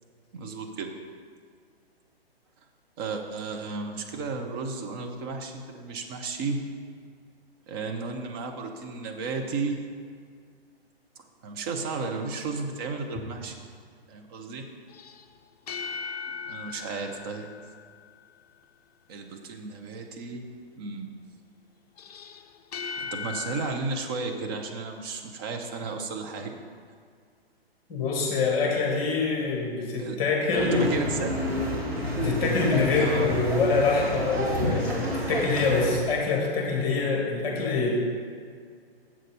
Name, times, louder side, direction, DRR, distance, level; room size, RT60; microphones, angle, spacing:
voice 1, 0.3-0.9 3.0-6.6 7.7-9.8 11.4-13.5 14.1-14.6 16.5-17.5 19.1-20.5 20.8-21.1 23.0-26.6 29.9-30.2 30.5-31.3 33.0-33.3, right 4 dB, 25° right, 3 dB, 0.7 m, -33 dB
sound 1, 14.9-18.4 22.0-23.7, left 6 dB, 40° left, 0.5 m, -38 dB
voice 2, 27.9-30.9 32.2-38.0, left 4 dB, 20° left, -1 dB, 2.1 m, -25 dB
sound 2, 30.5-36.0, equal, 85° right, 2.3 m, -29 dB
7.4 x 6.5 x 5.5 m, 2.1 s
figure-of-eight pair, 125°, 31 cm